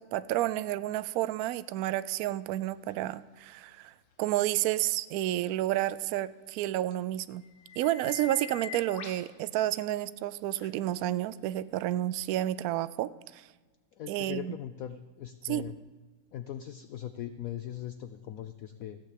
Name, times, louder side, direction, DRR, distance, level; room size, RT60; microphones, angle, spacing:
voice 1, 0.0-3.9 4.2-7.4 7.8-13.5 14.1-14.5 15.5-15.6, right 14 dB, 80° right, 15 dB, 0.8 m, -30 dB
sound 1, 2.9-3.0 6.9-7.0 7.4-9.3 10.6-10.7 12.3-12.4, left 6 dB, 50° left, 1.1 m, -43 dB
voice 2, 13.9-15.8 16.3-19.0, left 11 dB, 80° left, 11 dB, 0.7 m, -40 dB
15.0 x 6.6 x 8.3 m, 1.3 s
omnidirectional pair, 2.0 m